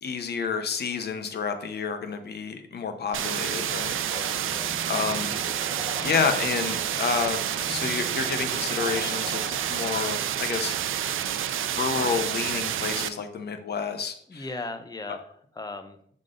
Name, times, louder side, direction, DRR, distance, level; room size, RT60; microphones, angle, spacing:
voice 1, 0.0-4.3 4.9-5.3 6.0-7.4 7.7-9.4 9.7-10.8 11.8-14.5, left 5 dB, 55° left, 7 dB, 0.8 m, -29 dB
sound 1, 3.1-13.1, right 10 dB, 80° right, 0.4 m, -29 dB
voice 2, 3.9-4.8 14.3-15.2 15.6-16.0, left 2 dB, 20° left, 7 dB, 0.7 m, -37 dB
sound 2, 4.1-10.1, right 1 dB, 35° right, 1.9 m, -40 dB
6.4 x 3.8 x 3.8 m, 0.62 s
wide cardioid pair, 125°, 20 cm